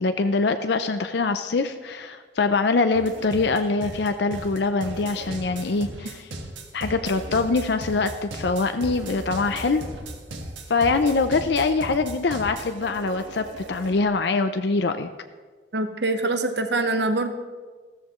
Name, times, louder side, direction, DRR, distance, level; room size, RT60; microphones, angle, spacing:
voice 1, 0.0-6.3 6.7-9.8 10.7-15.1, left 3 dB, 60° left, 8 dB, 0.5 m, -24 dB
sound 1, 2.9-14.1, right 1 dB, 80° right, 1.5 m, -37 dB
voice 2, 15.7-17.3, right 2 dB, 60° right, 7 dB, 1.0 m, -24 dB
15.0 x 13.5 x 3.1 m, 1.4 s
head